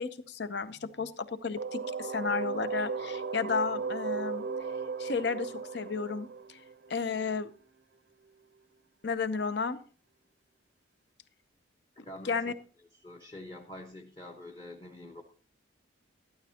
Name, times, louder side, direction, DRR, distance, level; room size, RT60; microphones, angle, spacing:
voice 1, 0.0-4.4 5.0-6.3 6.9-7.5 9.0-9.8 12.2-12.5, left 5 dB, 55° left, 13 dB, 0.7 m, -33 dB
sound 1, 1.6-7.3, right 5 dB, 55° right, 0.6 m, -36 dB
voice 2, 11.9-12.5 12.9-15.2, left 1 dB, 25° left, 2 dB, 1.1 m, -46 dB
12.5 x 12.5 x 2.8 m, 0.40 s
head